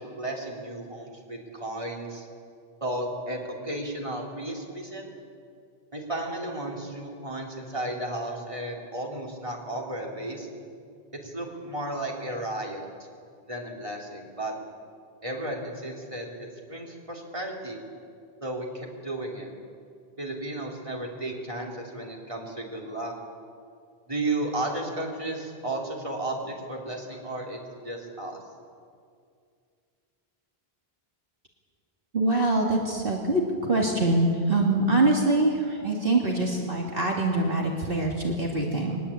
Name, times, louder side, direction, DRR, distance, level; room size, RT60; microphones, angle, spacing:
voice 1, 0.0-2.3 2.8-5.0 5.9-10.5 11.1-12.9 13.5-14.5 15.2-17.8 18.4-19.5 20.2-23.1 24.1-28.4, right 1 dB, 30° right, -1 dB, 3.6 m, -34 dB
voice 2, 32.1-39.0, right 2 dB, 65° right, -1 dB, 2.7 m, -24 dB
22.5 x 20.5 x 8.7 m, 2.3 s
omnidirectional pair, 1.0 m